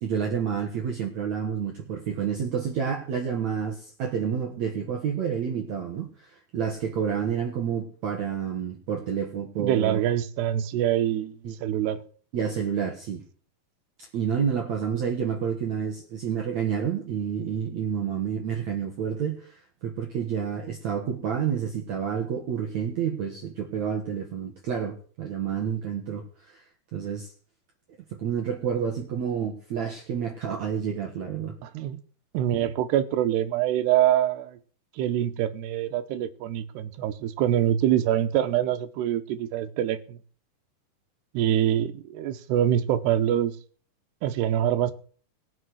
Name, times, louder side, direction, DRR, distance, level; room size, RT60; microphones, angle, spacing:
voice 1, 0.0-10.0 11.4-11.5 12.3-13.2 14.0-26.6 26.9-27.3 28.2-31.6, right 7 dB, 55° right, 2.3 m, -29 dB
voice 2, 9.6-12.0 31.6-32.0 32.3-34.6 35.0-40.2 41.3-43.6 44.2-44.9, right 11 dB, 90° right, 3.1 m, -25 dB
19.5 x 6.6 x 6.3 m
omnidirectional pair, 4.7 m